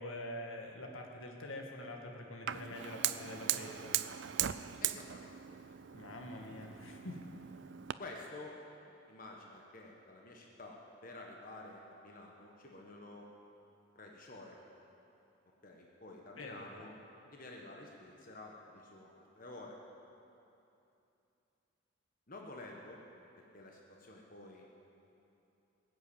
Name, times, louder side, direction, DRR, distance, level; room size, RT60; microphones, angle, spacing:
voice 1, 0.0-3.9 5.9-7.2 16.4-16.6, left 1 dB, 75° left, 2 dB, 1.9 m, -45 dB
Fire, 2.5-7.9, right 12 dB, 60° right, 0.4 m, -39 dB
voice 2, 4.8-5.6 8.0-8.6 9.1-13.3 13.9-14.6 15.6-16.9 17.3-19.8 22.3-23.0 23.4-24.7, left 2 dB, 40° left, -1 dB, 1.3 m, -50 dB
19.5 x 8.1 x 8.7 m, 2.8 s
head